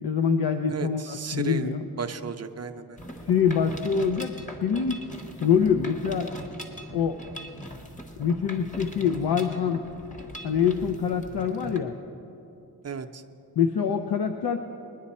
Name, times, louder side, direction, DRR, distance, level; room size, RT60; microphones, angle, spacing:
voice 1, 0.0-1.9 3.2-4.3 4.6-5.0 5.4-6.3 6.9-7.2 8.2-9.8 10.4-12.0 13.6-14.6, left 7 dB, 80° left, 6 dB, 0.6 m, -25 dB
voice 2, 0.7-1.7 2.0-3.0 12.8-13.2, right 6 dB, 45° right, 7 dB, 0.6 m, -34 dB
Mechanisms, 3.0-11.8, equal, 20° left, 1.1 m, -41 dB
21.0 x 10.0 x 4.2 m, 2.9 s
wide cardioid pair, 100°, 37 cm